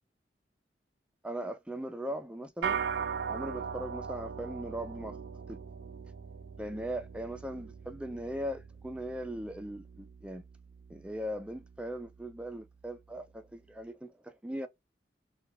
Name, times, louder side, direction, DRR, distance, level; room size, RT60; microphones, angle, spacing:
voice 1, 1.2-2.8 3.3-5.2 5.5-5.6 6.6-10.4 10.9-14.7, right 1 dB, 5° right, 0.3 m, -39 dB
sound 1, 2.6-12.2, right 6 dB, 75° right, 0.4 m, -40 dB
2.3 x 2.2 x 2.9 m
head